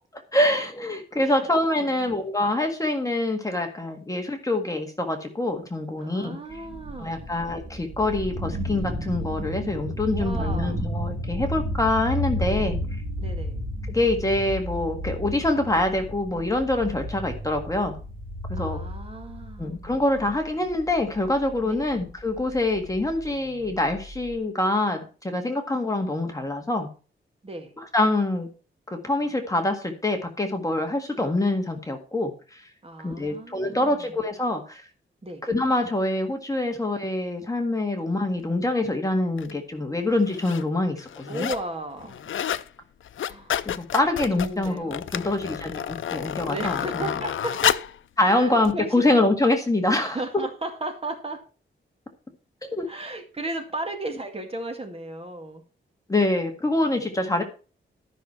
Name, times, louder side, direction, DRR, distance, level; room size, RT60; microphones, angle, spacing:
voice 1, 0.3-6.4 7.0-12.8 13.9-18.0 18.5-18.8 19.6-26.9 27.8-28.5 28.9-32.7 33.0-34.8 35.4-41.5 43.6-47.1 48.2-50.2 52.7-52.9 56.1-57.4, left 2 dB, 15° left, 4 dB, 1.8 m, -25 dB
voice 2, 1.8-2.1 6.0-7.3 10.1-10.8 13.2-13.7 18.6-20.0 21.6-21.9 27.4-27.7 32.8-34.1 35.2-35.5 41.3-42.2 43.3-43.6 44.4-45.0 46.5-47.8 48.2-49.1 50.0-51.4 52.9-55.6 57.2-57.4, right 2 dB, 30° right, 4 dB, 2.1 m, -35 dB
sound 1, 6.5-24.3, equal, 50° right, 3.4 m, -33 dB
sound 2, 39.4-39.5 40.2-40.6 41.0-41.7 42.0-42.7 43.0-48.0 48.7-48.8, left 10 dB, 75° left, 0.5 m, -29 dB
12.5 x 6.2 x 4.4 m, 0.36 s
wide cardioid pair, 120°, 20 cm